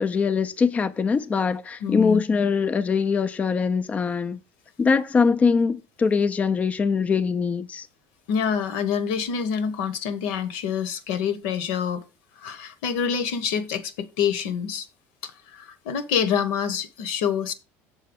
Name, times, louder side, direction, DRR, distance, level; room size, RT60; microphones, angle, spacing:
voice 1, 0.0-4.4 4.8-7.9, left 5 dB, 25° left, 0.5 m, -22 dB
voice 2, 1.8-2.2 8.3-12.0 12.4-14.9 15.2-17.5, left 7 dB, 80° left, 1.1 m, -26 dB
6.6 x 4.3 x 6.0 m
supercardioid pair, 115°, 6 cm